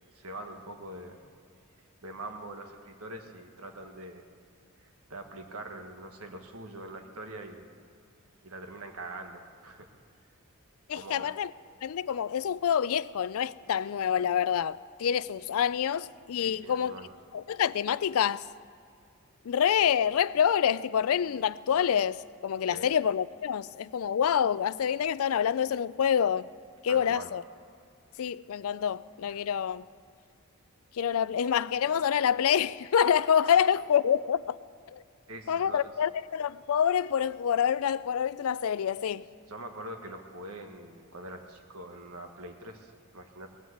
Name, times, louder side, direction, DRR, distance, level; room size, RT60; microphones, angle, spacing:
voice 1, 0.1-1.2 2.0-4.2 5.1-7.7 8.4-9.9 10.9-11.3 16.4-17.1 22.7-22.9 26.9-27.3 33.4-33.6 35.3-35.9 39.5-43.5, right 1 dB, 75° right, 1.5 m, -43 dB
voice 2, 10.9-11.5 11.8-16.9 17.3-18.4 19.5-26.5 26.8-27.4 28.2-29.8 31.0-34.6 34.9-35.0 35.5-39.3, left 8 dB, 70° left, 0.4 m, -27 dB
18.5 x 9.3 x 8.0 m
head